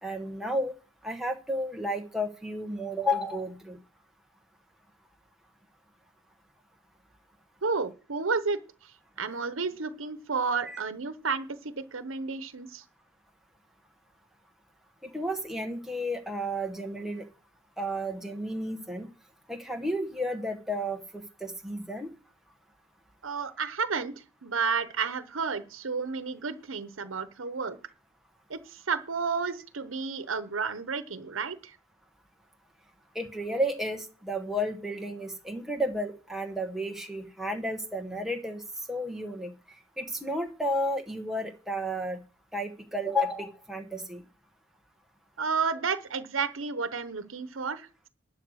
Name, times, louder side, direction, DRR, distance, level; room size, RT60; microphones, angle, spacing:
voice 1, 0.0-0.7 1.0-3.8 10.7-10.8 15.0-17.3 17.8-19.1 19.5-22.1 33.1-38.6 38.9-39.5 40.0-42.2 42.5-44.2, equal, ahead, 3 dB, 1.1 m, -32 dB
voice 2, 7.6-8.6 9.2-12.8 23.2-24.1 24.4-27.8 28.5-31.7 45.4-48.1, right 5 dB, 90° right, 12 dB, 1.0 m, -31 dB
11.5 x 6.4 x 6.3 m, 0.36 s
head